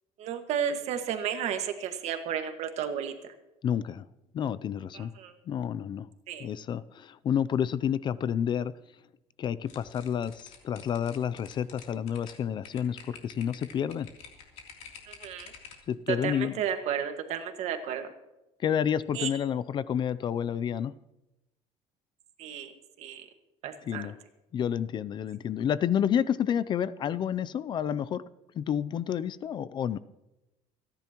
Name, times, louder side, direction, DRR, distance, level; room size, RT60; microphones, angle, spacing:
voice 1, 0.2-3.1 4.9-5.3 6.3-6.5 15.1-15.5 16.1-18.1 19.1-19.3 22.4-22.7 23.0-23.3 23.6-24.1, right 8 dB, 60° right, 6 dB, 1.7 m, -32 dB
voice 2, 3.6-4.1 4.3-5.1 5.5-6.1 6.4-8.7 9.4-14.1 15.9-16.5 18.6-20.9 23.9-24.1 24.5-28.2 28.6-30.0, left 9 dB, 35° left, 17 dB, 0.4 m, -29 dB
sound 1, 9.7-15.9, left 6 dB, 60° left, 3.2 m, -49 dB
28.5 x 10.5 x 3.0 m, 0.96 s
cardioid pair, 150°, 13 cm